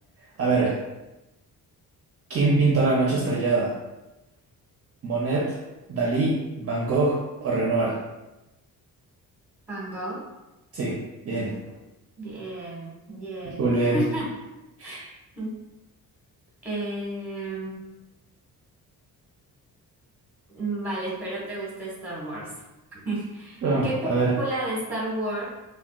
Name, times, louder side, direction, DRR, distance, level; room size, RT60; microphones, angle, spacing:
voice 1, 0.4-0.8 2.3-3.7 5.0-5.6 5.9-8.0 10.7-11.0 11.2-11.6 13.6-14.0 14.8-15.1 23.6-24.3, right 3 dB, 40° right, -4 dB, 0.5 m, -23 dB
voice 2, 9.7-10.3 12.2-14.2 14.8-15.0 15.4-15.6 16.6-17.8 20.5-22.5 22.9-24.1 24.4-25.4, right 1 dB, 5° right, -5 dB, 0.9 m, -32 dB
3.5 x 2.2 x 2.3 m, 1.0 s
cardioid pair, 135°, 36 cm